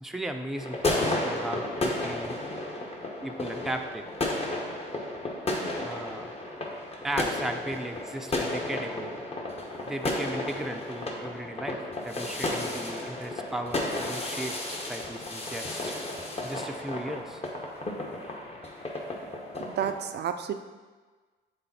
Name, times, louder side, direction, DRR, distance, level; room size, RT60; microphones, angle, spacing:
voice 1, 0.0-2.4 3.2-4.1 5.8-6.3 7.0-9.2 9.8-15.9 16.4-17.4, right 1 dB, ahead, 4 dB, 0.5 m, -36 dB
sound 1, 0.6-20.0, left 2 dB, 30° left, 1.1 m, -33 dB
voice 2, 19.6-20.5, right 8 dB, 55° right, 7 dB, 0.4 m, -30 dB
6.9 x 3.7 x 4.3 m, 1.4 s
cardioid pair, 90°, 20 cm